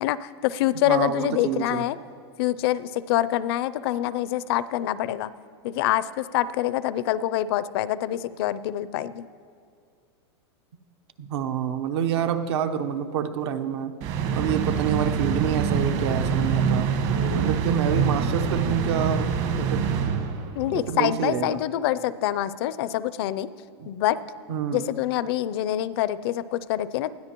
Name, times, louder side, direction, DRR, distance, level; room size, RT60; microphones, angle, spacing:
voice 1, 0.0-2.0 2.4-5.3 5.6-9.3 17.1-17.5 20.6-23.5 23.9-24.2 24.7-27.1, left 13 dB, 65° left, 17 dB, 0.5 m, -26 dB
voice 2, 0.9-1.8 11.2-13.9 14.3-16.9 17.3-19.3 19.6-19.9 20.7-21.6 23.8-23.9 24.5-24.8, right 8 dB, 70° right, 8 dB, 0.9 m, -27 dB
sound 1, 14.0-20.7, right 6 dB, 50° right, 1.4 m, -25 dB
20.0 x 13.0 x 3.0 m, 2.2 s
supercardioid pair, 130°, 14 cm